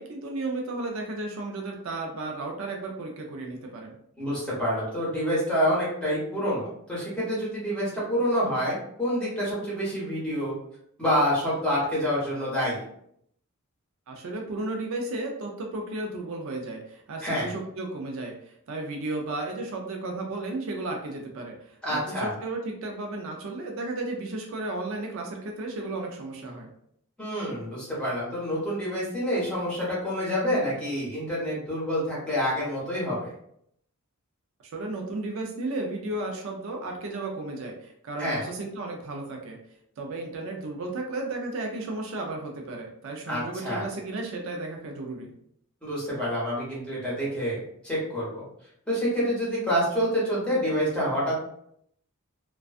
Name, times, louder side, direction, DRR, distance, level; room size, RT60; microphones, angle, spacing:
voice 1, 0.0-4.0 14.1-21.5 21.9-26.7 34.7-39.6 40.0-45.3, right 2 dB, 60° right, 1 dB, 0.4 m, -34 dB
voice 2, 4.2-10.6 11.0-12.8 17.2-17.5 21.8-22.3 27.2-33.3 38.2-38.4 43.3-43.9 45.8-48.4 48.9-51.4, equal, 5° left, -9 dB, 1.2 m, -27 dB
2.4 x 2.2 x 2.4 m, 0.71 s
head